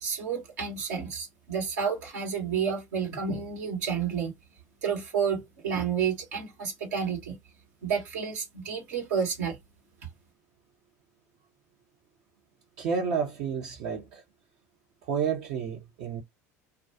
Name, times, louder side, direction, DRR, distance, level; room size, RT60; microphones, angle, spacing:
voice 1, 0.0-4.3 4.8-7.4 7.8-9.6, right 6 dB, 80° right, 1.2 m, -30 dB
voice 2, 12.8-14.2 15.0-16.2, right 6 dB, 60° right, 0.8 m, -30 dB
2.3 x 2.3 x 2.5 m
hypercardioid pair, 80°, 9 cm